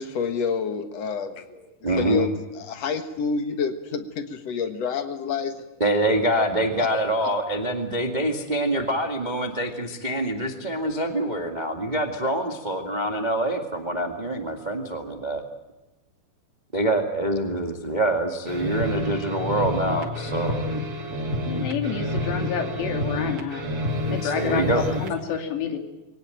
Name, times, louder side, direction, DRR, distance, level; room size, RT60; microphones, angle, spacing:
voice 1, 0.0-1.5 1.8-5.6 6.7-6.9 7.2-7.3, left 5 dB, 65° left, 9 dB, 1.7 m, -29 dB
voice 2, 1.8-2.3 5.8-15.4 16.7-20.6 24.2-24.8, right 1 dB, 65° right, 4 dB, 0.4 m, -25 dB
sound 1, 18.4-25.2, left 1 dB, 30° right, 2.4 m, -29 dB
voice 3, 21.4-23.6 24.1-25.8, left 6 dB, 80° left, 5 dB, 4.7 m, -29 dB
24.0 x 18.0 x 9.1 m, 1.0 s
omnidirectional pair, 4.9 m